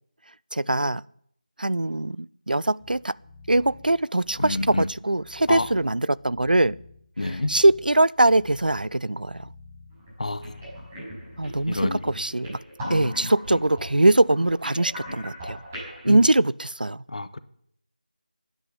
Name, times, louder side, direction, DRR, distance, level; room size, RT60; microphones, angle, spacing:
voice 1, 0.5-1.0 1.6-3.2 3.5-6.7 7.5-9.5 11.4-12.6 12.9-15.6 16.0-17.0, right 2 dB, 75° right, 0.5 m, -22 dB
sound 1, 2.8-12.0, left 3 dB, 5° left, 1.4 m, -49 dB
voice 2, 4.4-4.9 5.5-5.7 7.2-7.5 10.2-10.7 11.7-12.0 12.8-13.6 16.0-16.2 17.1-17.4, left 2 dB, 50° left, 1.1 m, -29 dB
sound 2, 9.9-10.1 10.4-16.1, equal, 15° right, 5.6 m, -39 dB
12.5 x 9.8 x 9.4 m
figure-of-eight pair, 165°, 5 cm